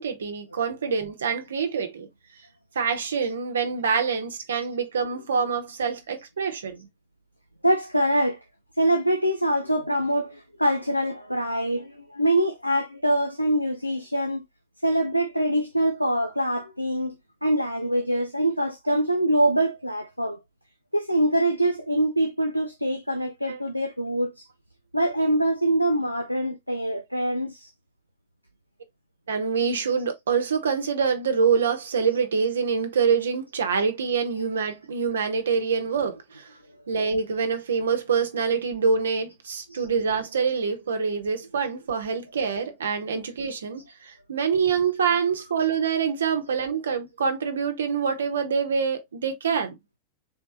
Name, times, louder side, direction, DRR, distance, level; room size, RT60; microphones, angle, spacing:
voice 1, 0.0-2.1 2.7-6.9 23.5-23.6 29.3-36.5 36.9-49.8, right 6 dB, 65° right, 0.9 m, -25 dB
voice 2, 7.6-8.4 8.8-14.4 14.8-17.2 17.4-20.4 20.9-24.4 24.9-27.7 36.0-36.2 39.7-39.9 42.5-42.6 45.6-45.7, right 1 dB, 90° left, 0.6 m, -24 dB
3.9 x 3.3 x 2.5 m
figure-of-eight pair, 90°, 0 cm